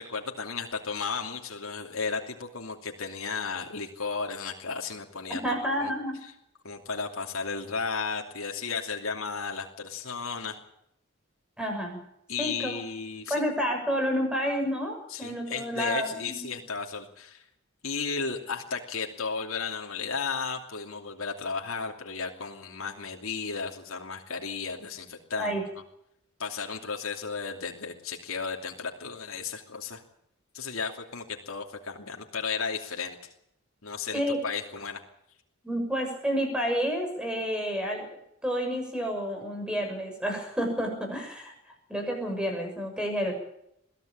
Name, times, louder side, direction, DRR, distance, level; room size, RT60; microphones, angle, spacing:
voice 1, 0.0-5.9 6.6-10.6 12.3-13.4 15.1-17.4 17.8-25.7 26.4-30.0 30.5-33.2 33.8-35.0, left 5 dB, 85° left, 1 dB, 2.8 m, -34 dB
voice 2, 5.3-6.2 11.6-12.0 12.4-12.7 13.3-16.5 25.4-25.6 34.1-34.4 35.6-38.1 38.4-41.5 41.9-43.3, equal, 5° right, 3 dB, 6.6 m, -30 dB
22.5 x 14.5 x 8.7 m, 0.76 s
head